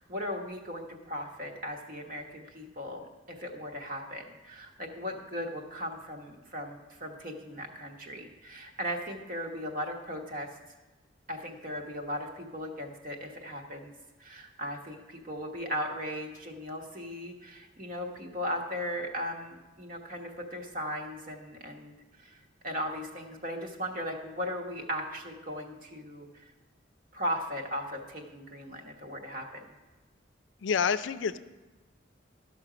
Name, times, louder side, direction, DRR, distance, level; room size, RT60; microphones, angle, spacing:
voice 1, 0.0-10.5 11.3-13.9 14.2-26.5 27.1-29.6, equal, 45° right, 2 dB, 1.2 m, -37 dB
voice 2, 30.6-31.4, left 6 dB, 75° left, 12 dB, 0.4 m, -28 dB
12.5 x 6.1 x 5.0 m, 1.2 s
head